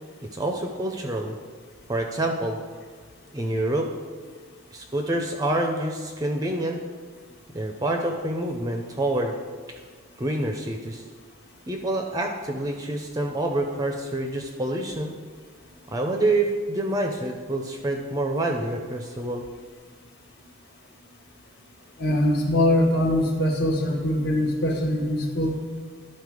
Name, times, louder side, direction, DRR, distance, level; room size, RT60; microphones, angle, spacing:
voice 1, 0.2-1.4 1.9-2.6 3.3-3.9 4.7-6.8 7.5-9.3 10.2-11.0 11.7-15.1 15.9-19.5, right 1 dB, 15° right, 3 dB, 0.5 m, -27 dB
voice 2, 22.0-25.6, left 1 dB, 50° left, 2 dB, 1.1 m, -22 dB
11.5 x 4.3 x 4.8 m, 1.6 s
head